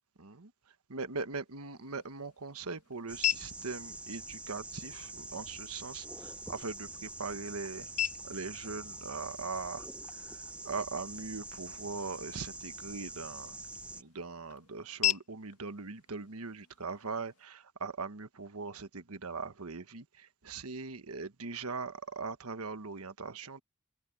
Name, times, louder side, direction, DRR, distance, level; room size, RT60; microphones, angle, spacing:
voice 1, 0.2-7.9 8.2-13.6 13.9-23.6, right 4 dB, 80° right, 1.3 m, -41 dB
sound 1, 1.5-17.5, left 11 dB, 85° left, 2.2 m, -41 dB
sound 2, 3.1-14.0, right 2 dB, 5° right, 0.8 m, -45 dB
open air
head